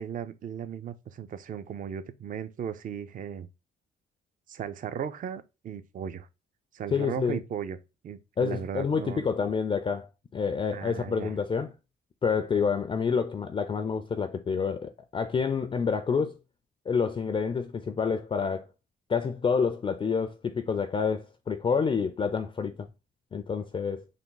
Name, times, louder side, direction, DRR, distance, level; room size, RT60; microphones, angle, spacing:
voice 1, 0.0-3.5 4.5-6.3 6.7-7.8 8.0-9.3 10.7-11.3, right 8 dB, 40° right, 0.4 m, -36 dB
voice 2, 6.9-7.4 8.4-11.7 12.2-16.4 16.9-18.7 19.1-22.9 23.3-24.0, left 5 dB, 25° left, 0.4 m, -28 dB
3.5 x 2.1 x 3.8 m
cardioid pair, 90°, 20 cm